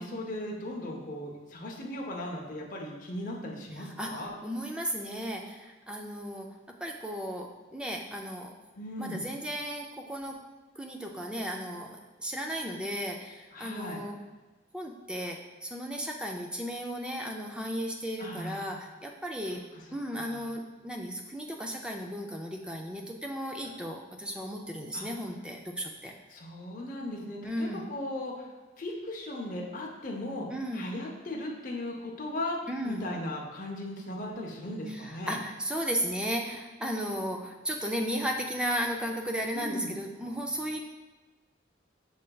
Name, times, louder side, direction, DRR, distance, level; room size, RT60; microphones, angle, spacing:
voice 1, 0.0-4.3 8.8-9.2 13.5-14.0 18.2-18.8 19.5-19.6 20.2-20.5 24.9-25.0 26.3-28.5 28.8-30.5 30.7-32.6 32.8-35.4 39.5-39.9, left 1 dB, 40° left, -2 dB, 0.7 m, -37 dB
voice 2, 3.8-6.5 6.8-8.5 9.0-10.4 10.8-14.2 14.7-19.6 19.9-26.1 27.4-27.9 30.5-30.9 32.7-33.0 34.9-40.8, equal, 5° right, 1 dB, 0.3 m, -35 dB
6.5 x 3.2 x 2.3 m, 1.2 s
head